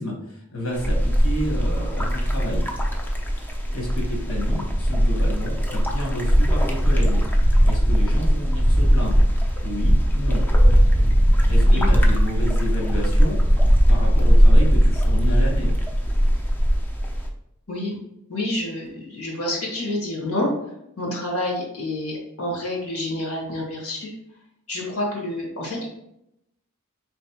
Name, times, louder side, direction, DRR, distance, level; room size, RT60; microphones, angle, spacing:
voice 1, 0.0-2.7 3.7-7.2 7.6-9.2 9.6-10.4 11.5-13.4 13.9-15.7, equal, 65° left, -1 dB, 1.3 m, -30 dB
sound 1, 0.7-17.3, equal, 10° left, 0.4 m, -19 dB
voice 2, 11.6-11.9 17.7-18.0 18.3-20.5 21.0-24.1 24.7-25.9, left 1 dB, 85° left, -2 dB, 1.5 m, -28 dB
4.2 x 3.2 x 2.9 m, 0.81 s
head